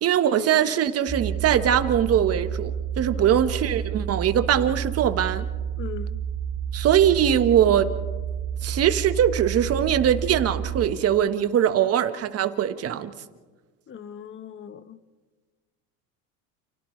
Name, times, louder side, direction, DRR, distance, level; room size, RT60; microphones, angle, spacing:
voice 1, 0.0-2.7 3.0-5.4 6.7-7.9 8.6-13.1, right 9 dB, 35° right, 1.3 m, -21 dB
sound 1, 1.1-10.9, right 8 dB, 10° right, 2.6 m, -30 dB
voice 2, 5.8-6.2 13.9-15.0, left 8 dB, 30° left, 1.1 m, -39 dB
30.0 x 29.0 x 3.2 m
supercardioid pair, 105°, 40 cm